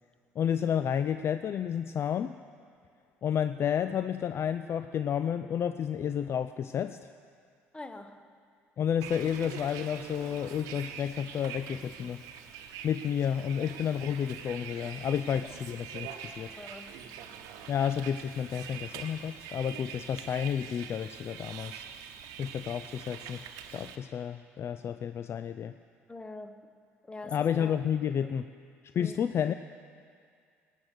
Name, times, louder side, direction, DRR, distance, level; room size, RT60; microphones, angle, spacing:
voice 1, 0.4-2.3 3.2-7.0 8.8-12.2 12.8-16.5 17.7-21.9 22.4-25.7 27.3-28.5 28.9-29.5, left 8 dB, 40° left, 11 dB, 0.4 m, -31 dB
voice 2, 7.7-8.3 15.4-15.5 16.6-17.0 26.1-26.7 27.0-27.4 28.2-28.3 29.0-29.2, left 2 dB, 15° left, 9 dB, 1.0 m, -44 dB
Bus, 9.0-24.0, right 8 dB, 60° right, 1.0 m, -44 dB
19.0 x 9.3 x 6.5 m, 2.2 s
figure-of-eight pair, 55°, 7 cm